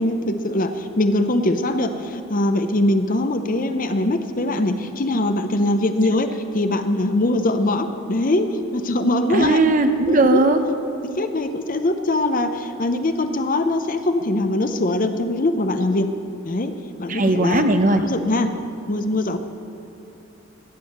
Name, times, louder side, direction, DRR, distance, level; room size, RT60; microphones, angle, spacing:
voice 1, 0.0-9.6 10.1-10.5 11.2-16.1 16.4-16.7 17.0-17.7 18.0-18.5 18.9-19.4, left 1 dB, 40° left, 8 dB, 0.7 m, -22 dB
voice 2, 9.3-10.6 17.1-18.0, right 2 dB, 35° right, 7 dB, 0.8 m, -17 dB
15.0 x 9.1 x 6.6 m, 2.7 s
head